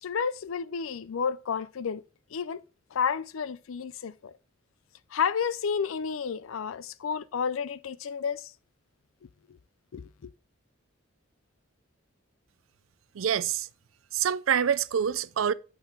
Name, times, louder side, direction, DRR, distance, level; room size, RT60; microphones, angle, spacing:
voice 1, 0.0-2.0 2.3-2.6 2.9-4.3 5.1-8.5 9.9-10.3, left 6 dB, 75° left, 0.4 m, -31 dB
voice 2, 13.2-13.7 14.1-15.5, right 8 dB, 70° right, 0.4 m, -26 dB
6.7 x 5.7 x 4.5 m
head